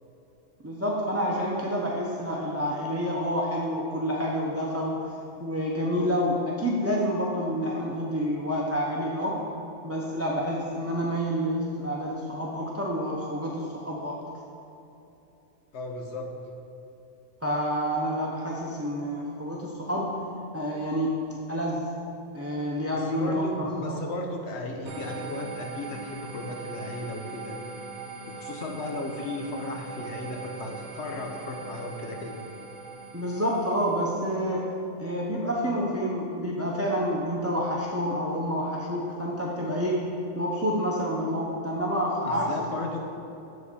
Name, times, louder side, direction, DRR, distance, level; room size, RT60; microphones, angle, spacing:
voice 1, 0.6-5.1 5.4-9.4 9.8-14.2 17.4-20.1 20.5-21.2 21.5-21.8 22.3-24.0 33.1-34.7 35.0-40.1 40.3-42.5, equal, 15° right, -4 dB, 0.7 m, -28 dB
voice 2, 15.7-16.3 22.9-27.6 28.3-32.4 42.3-43.0, left 2 dB, 65° left, 2 dB, 1.1 m, -35 dB
sound 1, 24.9-34.2, right 4 dB, 75° right, 1.1 m, -40 dB
7.5 x 4.2 x 6.7 m, 2.9 s
omnidirectional pair, 1.2 m